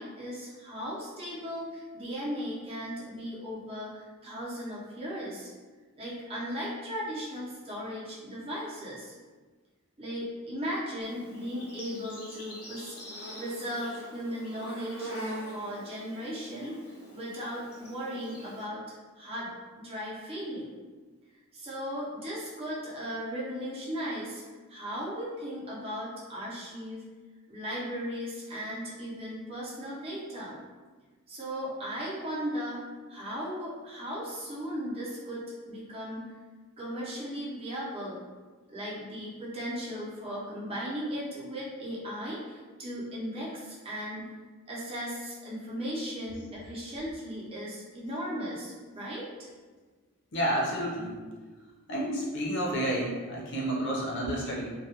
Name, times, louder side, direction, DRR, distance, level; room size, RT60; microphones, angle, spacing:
voice 1, 0.0-5.5 6.0-9.1 10.0-13.0 13.4-15.1 15.5-16.8 17.1-18.8 19.2-19.5 19.8-20.7 21.5-24.4 24.7-27.0 27.5-30.6 31.3-32.8 33.1-36.3 36.8-38.2 38.7-44.3 44.7-49.3, equal, 25° right, -6 dB, 0.6 m, -37 dB
Insect, 11.0-18.6, equal, 85° left, 1.0 m, -43 dB
voice 2, 50.3-51.2 51.9-54.7, right 1 dB, 55° left, -4 dB, 0.6 m, -30 dB
2.3 x 2.1 x 2.8 m, 1.4 s
head